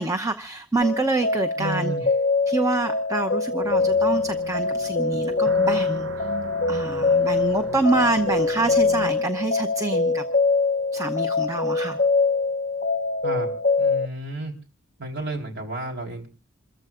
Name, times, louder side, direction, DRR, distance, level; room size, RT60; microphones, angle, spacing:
voice 1, 0.0-1.9 2.5-6.3 6.7-10.2 10.9-12.0, right 2 dB, 15° right, 7 dB, 0.8 m, -26 dB
sound 1, 0.8-14.0, left 4 dB, 35° left, 1.0 m, -23 dB
voice 2, 1.6-2.0 13.2-13.5 13.8-14.5 15.0-16.3, right 2 dB, 55° right, 1 dB, 4.0 m, -31 dB
sound 2, 3.6-9.1, right 3 dB, 70° right, 1.0 m, -39 dB
28.0 x 14.5 x 2.5 m, 0.35 s
head